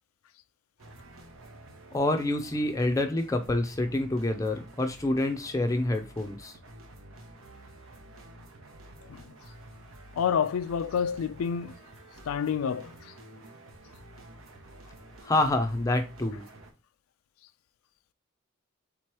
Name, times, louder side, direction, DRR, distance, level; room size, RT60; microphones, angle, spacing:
sound 1, 0.8-16.7, right 1 dB, 85° right, 0.9 m, -50 dB
voice 1, 1.9-6.5 15.2-16.4, left 2 dB, 15° left, 0.5 m, -27 dB
voice 2, 10.2-11.8 12.3-13.1, left 7 dB, 85° left, 0.3 m, -28 dB
3.7 x 3.0 x 4.6 m
head